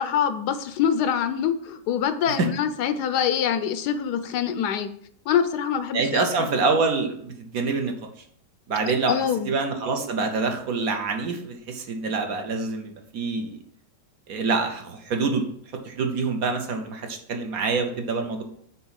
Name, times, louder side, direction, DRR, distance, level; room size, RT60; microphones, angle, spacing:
voice 1, 0.0-4.9 5.3-6.5 9.1-9.5, left 8 dB, 75° left, 11 dB, 1.1 m, -25 dB
voice 2, 5.9-7.9 8.7-9.1 9.5-13.6 14.3-15.4 15.8-18.4, right 4 dB, 60° right, 4 dB, 1.3 m, -26 dB
6.1 x 4.1 x 5.7 m, 0.65 s
omnidirectional pair, 1.9 m